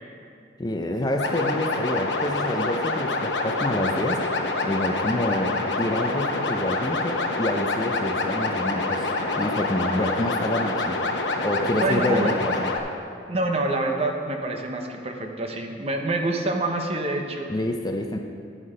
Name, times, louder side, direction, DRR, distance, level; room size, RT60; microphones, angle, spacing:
voice 1, 0.6-4.2 4.6-11.0 11.4-12.7 17.5-18.2, left 1 dB, 20° left, 3 dB, 0.5 m, -27 dB
sound 1, 1.2-12.8, left 2 dB, 75° left, 1.0 m, -26 dB
voice 2, 11.7-12.3 13.3-17.5, right 2 dB, 35° right, 3 dB, 0.9 m, -26 dB
10.5 x 8.3 x 5.0 m, 2.4 s
head